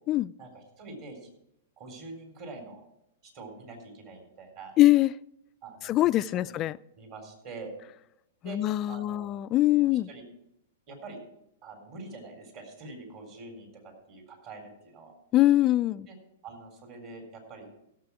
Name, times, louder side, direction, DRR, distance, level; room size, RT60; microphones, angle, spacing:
voice 1, 0.4-1.3 1.8-2.8 3.3-4.7 5.6-6.6 7.0-7.7 8.4-8.6 8.9-9.3 9.7-10.2 10.9-11.2 11.6-15.1 16.1-16.2 16.4-17.7, right 3 dB, 45° right, 4.0 m, -45 dB
voice 2, 4.8-5.1 5.9-6.8 8.4-10.1 15.3-16.1, left 15 dB, 35° left, 0.3 m, -23 dB
16.5 x 7.5 x 4.8 m
hypercardioid pair, 110°, 0 cm